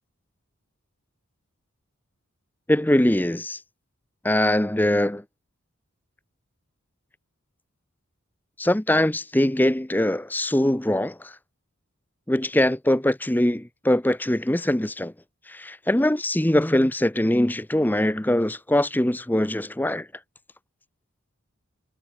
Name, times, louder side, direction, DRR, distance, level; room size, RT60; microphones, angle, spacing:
voice 1, 2.7-3.6 4.2-5.2 8.6-11.3 12.3-15.1 15.5-20.1, left 1 dB, 10° left, 0.7 m, -22 dB
head